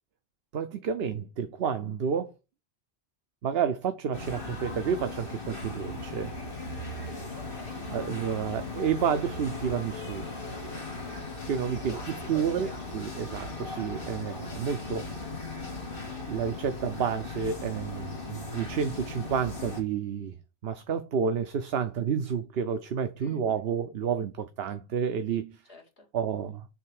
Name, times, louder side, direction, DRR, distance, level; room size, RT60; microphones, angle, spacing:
voice 1, 0.5-2.3 3.4-6.3 7.9-10.3 11.5-12.0 12.3-15.1 16.3-25.6 26.1-26.7, right 7 dB, 75° right, 0.9 m, -30 dB
sound 1, 4.1-19.8, left 2 dB, 60° left, 2.1 m, -38 dB
voice 2, 7.0-7.8 11.0-11.2 11.7-12.1 12.3-13.0 23.2-23.6 25.7-26.1, left 2 dB, 75° left, 2.2 m, -49 dB
7.6 x 3.3 x 6.4 m
omnidirectional pair, 1.0 m